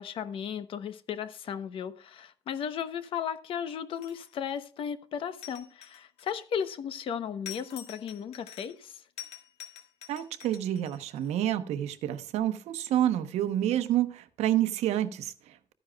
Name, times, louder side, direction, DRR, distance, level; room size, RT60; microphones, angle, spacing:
voice 1, 0.0-9.0, left 8 dB, 55° left, 0.9 m, -35 dB
sound 1, 3.9-4.5 5.4-6.7 7.5-8.9 9.2-11.3, left 11 dB, 75° left, 1.7 m, -46 dB
voice 2, 10.1-15.6, right 12 dB, 85° right, 1.0 m, -28 dB
13.5 x 10.0 x 2.4 m
cardioid pair, 160°, 11 cm